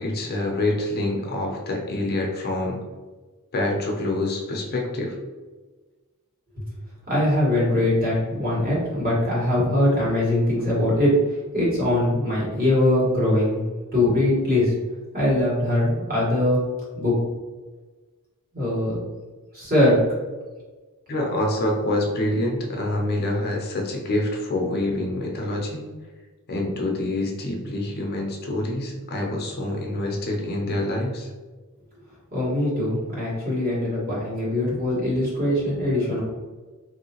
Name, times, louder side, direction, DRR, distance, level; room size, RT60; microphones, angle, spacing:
voice 1, 0.0-2.8 3.5-5.2 21.1-25.9 26.5-31.3, left 1 dB, 45° left, 0 dB, 0.5 m, -26 dB
voice 2, 7.1-13.6 13.9-14.7 15.1-16.6 16.9-17.1 18.5-19.0 19.5-20.0 32.3-36.2, left 1 dB, 40° right, -7 dB, 1.4 m, -22 dB
3.2 x 2.7 x 2.8 m, 1.3 s
head